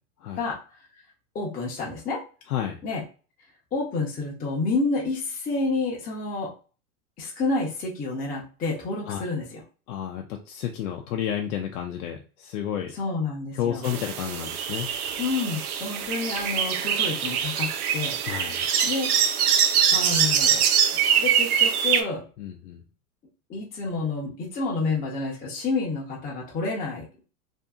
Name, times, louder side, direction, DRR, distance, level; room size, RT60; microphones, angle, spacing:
voice 1, 1.3-2.2 2.8-3.0 3.7-6.5 7.2-9.6 12.9-13.9 15.2-18.2 18.8-19.4 19.9-22.2 23.5-27.2, left 3 dB, 20° left, -3 dB, 0.7 m, -29 dB
voice 2, 2.5-2.8 9.1-9.2 9.9-12.9 13.5-14.9 18.2-18.7 22.4-22.8, left 10 dB, 85° left, 3 dB, 0.6 m, -31 dB
sound 1, 13.8-22.0, right 8 dB, 90° right, 0.6 m, -23 dB
2.7 x 2.6 x 2.3 m, 0.36 s
supercardioid pair, 125°, 43 cm